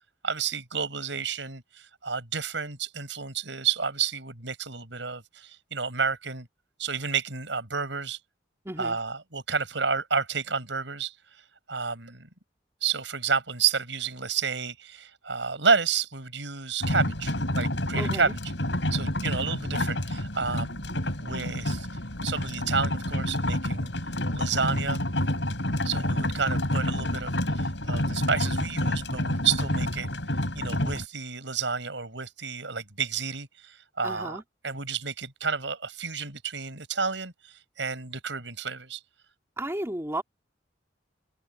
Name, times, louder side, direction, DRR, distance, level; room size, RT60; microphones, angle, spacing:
voice 1, 0.2-6.5 6.8-8.2 8.8-11.1 11.7-12.3 12.8-18.4 18.9-20.9 21.2-21.9 22.2-23.9 24.3-25.0 25.8-30.1 30.5-39.0, right 5 dB, 80° right, 5.7 m, -30 dB
voice 2, 8.6-9.0 18.0-18.3 34.0-34.4 39.6-40.2, right 1 dB, 15° right, 2.5 m, -33 dB
sound 1, 16.8-31.0, left 1 dB, 75° left, 5.9 m, -29 dB
head